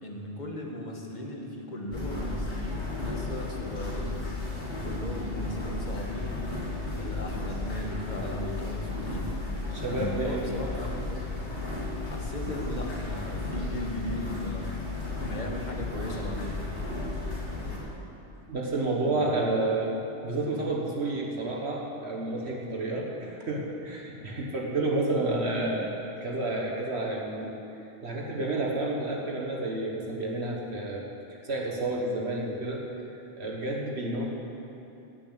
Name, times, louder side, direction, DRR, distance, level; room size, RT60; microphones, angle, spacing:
voice 1, 0.0-4.2 4.8-6.3 6.9-9.3 9.9-10.9 12.0-14.8 15.2-16.6 19.1-19.3, left 1 dB, 40° left, 0 dB, 1.8 m, -37 dB
sound 1, 1.9-17.8, left 2 dB, 65° left, 3.5 m, -34 dB
voice 2, 9.7-10.5 10.7-10.9 18.5-20.0 20.2-27.6 28.0-31.1 31.3-32.9 33.4-34.2, right 2 dB, 65° right, -1 dB, 1.8 m, -30 dB
17.5 x 7.0 x 8.3 m, 2.9 s
omnidirectional pair, 1.2 m